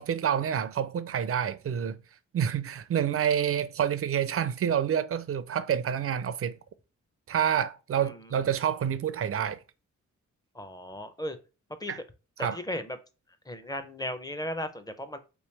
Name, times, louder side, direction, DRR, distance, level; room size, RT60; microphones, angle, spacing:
voice 1, 0.0-2.0 2.3-6.6 7.3-9.6 11.9-12.0 12.4-12.6, right 8 dB, 50° right, 0.4 m, -28 dB
voice 2, 10.5-11.4 11.8-12.0 12.4-13.0 13.5-15.2, left 1 dB, 15° left, 0.5 m, -36 dB
3.3 x 3.0 x 3.2 m
cardioid pair, 90°, 30 cm